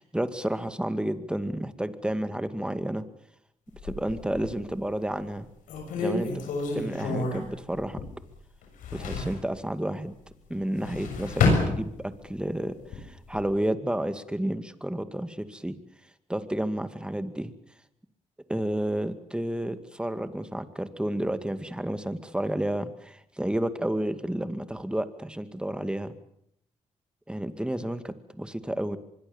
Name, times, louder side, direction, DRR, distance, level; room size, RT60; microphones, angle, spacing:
voice 1, 0.0-3.1 3.8-5.5 6.0-6.3 6.7-8.0 8.9-10.2 10.5-15.8 16.3-17.5 18.5-26.2 27.3-29.0, right 1 dB, 5° right, 11 dB, 2.1 m, -31 dB
sound 1, 3.7-4.7 5.2-5.3 5.7-8.3 8.6-9.4 10.6-12.3 12.8-13.4, left 3 dB, 85° left, 6.8 m, -29 dB
24.5 x 22.0 x 7.2 m, 0.74 s
cardioid pair, 70°, 13 cm